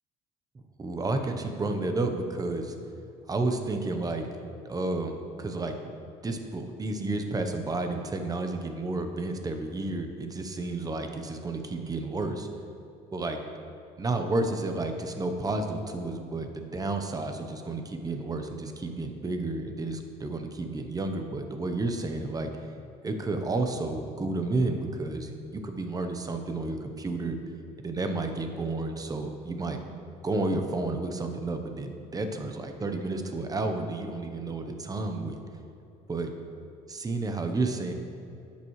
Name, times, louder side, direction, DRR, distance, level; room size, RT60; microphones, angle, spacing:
voice 1, 0.8-2.7 3.3-4.3 4.6-5.7 6.2-12.5 13.1-13.4 14.0-22.5 23.0-27.4 27.8-29.8 30.2-35.4 36.1-36.3 36.9-37.9, right 2 dB, 20° right, 5 dB, 0.9 m, -31 dB
10.5 x 8.4 x 3.2 m, 2.5 s
cardioid pair, 110°, 17 cm